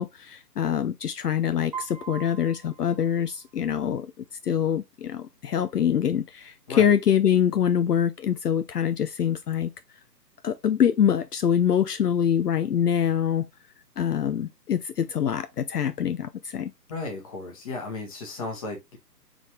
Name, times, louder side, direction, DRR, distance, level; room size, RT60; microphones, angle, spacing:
voice 1, 0.0-4.1 4.4-9.7 10.4-13.5 14.0-16.7, left 9 dB, 70° left, 0.5 m, -24 dB
Piano, 1.7-3.8, right 8 dB, 25° right, 0.7 m, -41 dB
voice 2, 16.9-19.0, left 3 dB, 20° left, 1.2 m, -35 dB
5.2 x 3.4 x 3.0 m
figure-of-eight pair, 140°, 50 cm